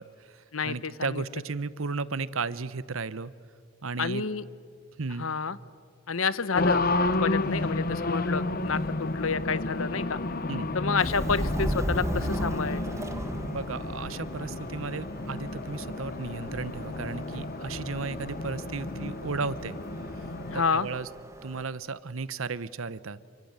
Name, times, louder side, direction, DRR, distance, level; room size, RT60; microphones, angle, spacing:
voice 1, 0.0-3.3 3.8-4.2 5.0-5.3 10.5-10.7 13.4-19.8 20.5-21.1 21.4-23.2, right 4 dB, 80° right, 17 dB, 0.9 m, -34 dB
voice 2, 0.5-1.2 4.0-4.4 5.2-5.6 6.1-6.8 7.2-10.2 10.7-12.8 20.5-20.9, left 5 dB, 90° left, 17 dB, 1.0 m, -29 dB
Race car auto racing, 6.6-20.6, left 2 dB, 45° left, 1.0 m, -32 dB
Subway metro underground, 11.0-21.6, equal, 15° right, 1.4 m, -37 dB
29.0 x 24.5 x 8.1 m, 2.1 s
head